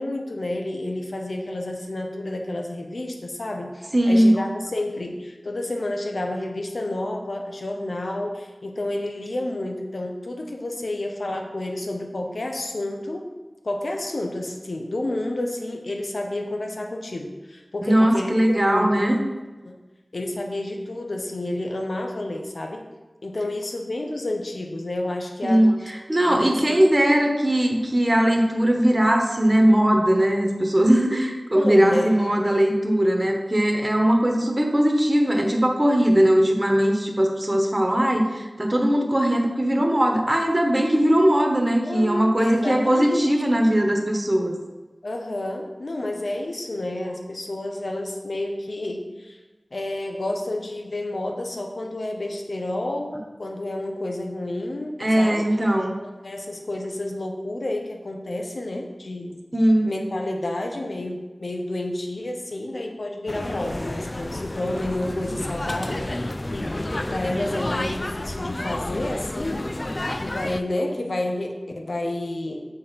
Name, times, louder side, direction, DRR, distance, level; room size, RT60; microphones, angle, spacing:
voice 1, 0.0-13.3 13.6-18.9 19.6-19.8 20.1-22.8 23.2-25.7 26.2-26.8 31.5-32.1 41.7-43.3 45.0-49.4 49.7-55.5 56.0-59.4 59.8-69.7 70.2-72.6, left 1 dB, 80° left, 2 dB, 1.0 m, -30 dB
voice 2, 3.9-4.3 17.8-19.2 25.4-44.6 55.0-56.0 59.5-59.9, right 1 dB, 30° right, 2 dB, 1.2 m, -20 dB
sound 1, 63.3-70.6, left 1 dB, 40° left, 0.4 m, -30 dB
7.3 x 4.6 x 5.2 m, 1.2 s
wide cardioid pair, 55°, 0 cm